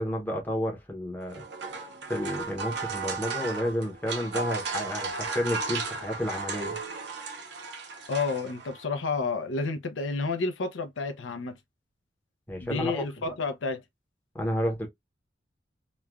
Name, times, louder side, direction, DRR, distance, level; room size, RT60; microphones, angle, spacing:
voice 1, 0.0-1.4 2.1-6.8 12.5-13.0 14.3-14.9, equal, 10° left, 0.8 m, -31 dB
sound 1, 1.2-8.8, right 4 dB, 65° right, 0.8 m, -35 dB
voice 2, 8.1-11.5 12.6-13.8, left 4 dB, 75° left, 0.6 m, -30 dB
3.1 x 2.2 x 2.3 m
head